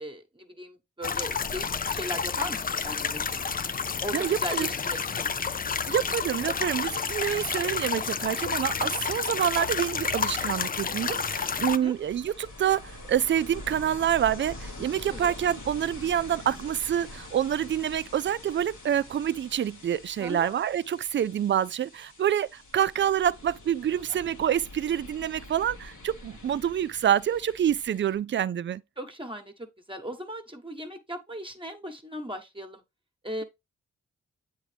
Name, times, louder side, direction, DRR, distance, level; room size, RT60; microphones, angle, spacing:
voice 1, 0.0-3.4 4.0-5.3 8.8-9.0 11.6-11.9 15.1-15.3 20.2-20.5 24.1-24.2 29.0-32.8 33.2-33.4, equal, 15° right, 1.1 m, -38 dB
sound 1, 1.0-11.8, left 6 dB, 30° left, 0.5 m, -30 dB
voice 2, 4.1-4.7 5.9-28.8, right 10 dB, 40° right, 0.4 m, -27 dB
Ocean, 10.9-28.2, left 2 dB, 85° left, 1.9 m, -45 dB
8.0 x 3.7 x 3.3 m
supercardioid pair, 40°, 30 cm